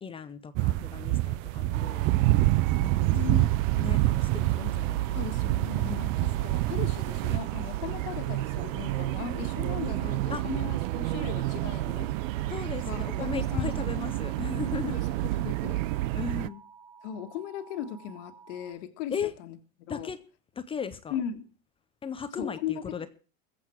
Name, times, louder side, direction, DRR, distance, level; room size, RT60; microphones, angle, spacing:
voice 1, 0.0-2.3 2.8-5.6 5.8-6.1 6.4-6.5 10.3-10.4 12.5-14.9 16.1-16.6 19.1-19.3 19.9-20.2 20.6-21.2 22.0-23.1, left 7 dB, 15° left, 11 dB, 0.6 m, -37 dB
sound 1, 0.6-7.4, right 17 dB, 40° right, 0.5 m, -26 dB
sound 2, 1.7-16.5, right 16 dB, 85° right, 0.6 m, -31 dB
sound 3, 2.6-18.7, right 5 dB, 15° right, 2.5 m, -53 dB
voice 2, 3.1-3.5 5.1-12.1 12.9-14.1 14.6-15.8 17.0-19.1 19.4-20.1 21.1-21.4 22.4-22.7, left 9 dB, 70° left, 6 dB, 1.7 m, -38 dB
21.5 x 7.9 x 4.5 m, 0.38 s
supercardioid pair, 155°, 38 cm